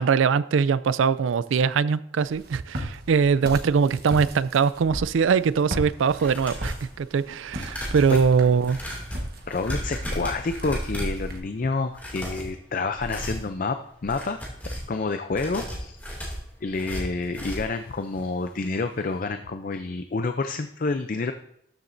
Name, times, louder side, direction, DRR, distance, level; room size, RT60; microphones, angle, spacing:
voice 1, 0.0-8.8, right 6 dB, 75° right, 17 dB, 0.4 m, -22 dB
Walk footsteps, 2.2-11.4, equal, 50° right, 1.4 m, -37 dB
sound 1, 6.1-6.9 7.5-11.3 11.9-12.5 12.9-13.5 14.0-14.9 15.3-17.8 18.1-18.3 18.6-18.7, equal, 10° left, 2.4 m, -34 dB
voice 2, 9.5-13.8 14.0-14.4 14.9-15.9 16.6-21.3, left 3 dB, 45° left, 8 dB, 0.4 m, -28 dB
13.0 x 7.2 x 2.6 m, 0.73 s
head